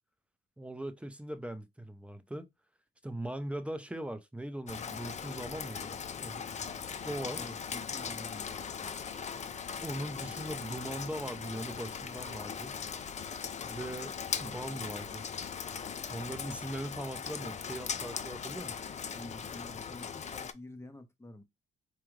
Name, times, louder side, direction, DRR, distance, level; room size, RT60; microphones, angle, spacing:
voice 1, 0.6-2.5 3.0-6.4 7.0-7.4 9.8-12.8 13.6-15.2 16.1-18.7, right 1 dB, 5° right, 0.6 m, -40 dB
Rain, 4.7-20.5, left 7 dB, 35° left, 0.5 m, -39 dB
voice 2, 7.0-9.0 18.7-21.4, left 1 dB, 15° left, 1.0 m, -49 dB
4.8 x 2.3 x 3.1 m
cardioid pair, 90°, 20 cm